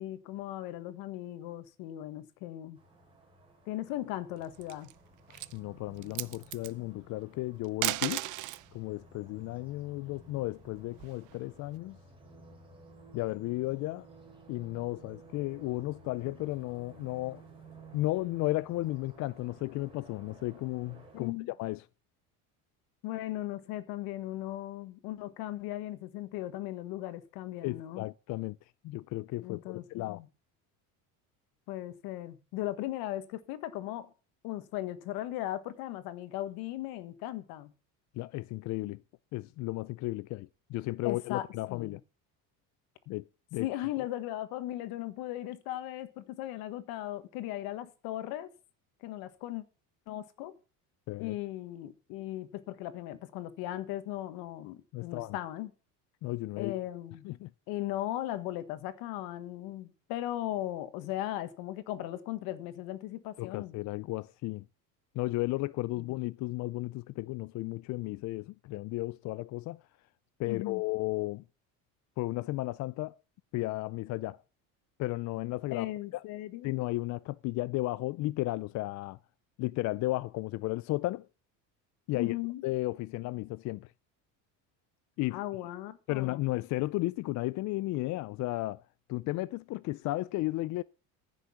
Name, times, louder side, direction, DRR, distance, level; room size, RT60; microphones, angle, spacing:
voice 1, 0.0-2.8 3.6-4.9 21.1-21.5 23.0-28.1 29.4-30.3 31.7-34.1 34.4-37.7 41.0-42.0 43.6-48.5 49.0-49.6 50.1-50.5 51.2-55.7 56.6-57.3 57.7-63.8 66.0-66.1 70.5-70.8 75.7-76.8 82.1-82.6 85.3-86.4, left 14 dB, 70° left, 1.6 m, -37 dB
sound 1, 2.8-21.3, right 3 dB, 15° right, 4.8 m, -55 dB
sound 2, 4.4-4.9 5.3-5.6 6.0-6.7 7.6-8.7 10.2-11.3, right 17 dB, 55° right, 0.8 m, -35 dB
voice 2, 5.3-8.2 8.7-12.0 13.1-14.1 14.5-17.4 17.9-21.8 27.6-28.6 28.8-30.2 38.2-39.0 39.3-42.0 43.1-43.7 51.1-51.3 54.9-55.4 56.2-56.8 57.2-57.5 63.4-64.6 65.2-69.8 70.4-71.4 72.2-73.1 73.5-74.4 75.0-75.9 76.1-76.2 76.6-79.2 79.6-81.3 82.1-82.4 82.6-83.9 85.2-85.4 86.1-88.8 89.1-90.8, left 19 dB, 50° left, 0.5 m, -34 dB
14.5 x 6.5 x 5.7 m
cardioid pair, 130°, 37 cm